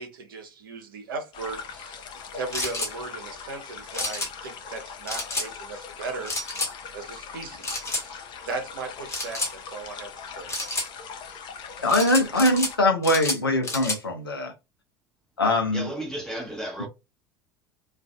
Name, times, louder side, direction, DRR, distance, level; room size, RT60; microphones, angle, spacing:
voice 1, 0.0-6.6 6.9-10.5, right 3 dB, 65° right, 0.7 m, -37 dB
sound 1, 1.3-12.8, left 6 dB, 40° left, 0.6 m, -41 dB
sound 2, 2.5-2.9 3.9-4.3 5.1-5.5 6.3-6.7 7.6-8.0 9.1-9.5 10.5-10.9 11.9-12.7 13.0-14.0, left 2 dB, 25° left, 1.3 m, -29 dB
voice 2, 11.8-14.5 15.4-15.9, left 1 dB, 80° left, 0.6 m, -22 dB
voice 3, 15.7-16.9, right 1 dB, 5° left, 0.9 m, -34 dB
2.5 x 2.4 x 2.2 m
figure-of-eight pair, 70°, 12 cm